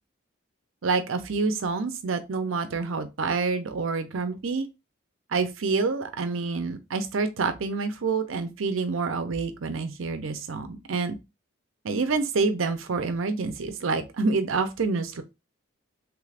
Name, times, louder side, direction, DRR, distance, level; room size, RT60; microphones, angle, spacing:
voice 1, 0.8-4.7 5.3-11.2 11.8-15.2, right 4 dB, 70° right, 0.6 m, -27 dB
3.3 x 2.4 x 3.3 m
head